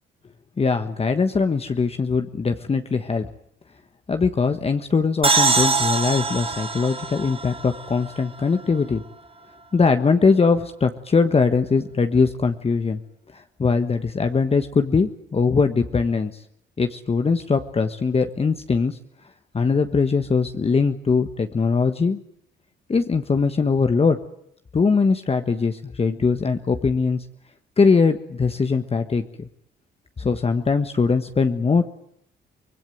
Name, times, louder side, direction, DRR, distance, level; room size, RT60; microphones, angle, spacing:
voice 1, 0.6-3.3 4.1-9.0 9.7-13.0 13.3-16.3 16.8-19.0 19.5-22.2 22.9-24.2 24.7-27.2 27.8-29.5 30.2-31.8, left 4 dB, 30° left, 7 dB, 1.4 m, -21 dB
sound 1, 5.2-8.8, right 4 dB, 25° right, 2.0 m, -23 dB
25.0 x 20.5 x 9.3 m, 0.73 s
cardioid pair, 90°, 20 cm